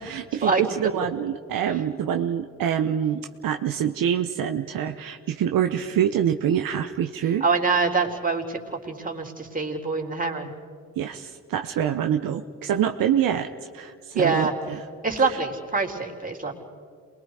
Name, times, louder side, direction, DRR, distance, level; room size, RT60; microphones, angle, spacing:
voice 1, 0.0-7.4 11.0-14.8 15.3-15.4, right 9 dB, 70° right, 6 dB, 0.9 m, -26 dB
voice 2, 7.4-10.5 14.1-14.5 15.0-16.6, right 4 dB, 25° right, 0 dB, 3.7 m, -25 dB
28.0 x 21.5 x 4.9 m, 2.2 s
supercardioid pair, 50°, 35 cm